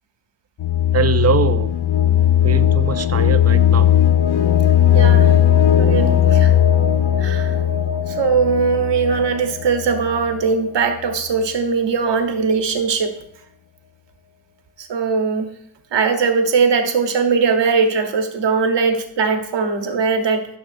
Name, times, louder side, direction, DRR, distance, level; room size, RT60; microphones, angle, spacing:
sound 1, 0.6-10.4, left 10 dB, 65° left, 0.6 m, -17 dB
voice 1, 0.9-1.7 2.4-3.9, right 6 dB, 35° right, 12 dB, 0.5 m, -22 dB
voice 2, 4.9-5.3 5.8-6.5 7.2-7.5 8.1-13.1 14.9-15.5 15.9-20.5, right 5 dB, 80° right, 6 dB, 1.1 m, -20 dB
12.5 x 6.0 x 2.6 m, 0.71 s
cardioid pair, 70°, 42 cm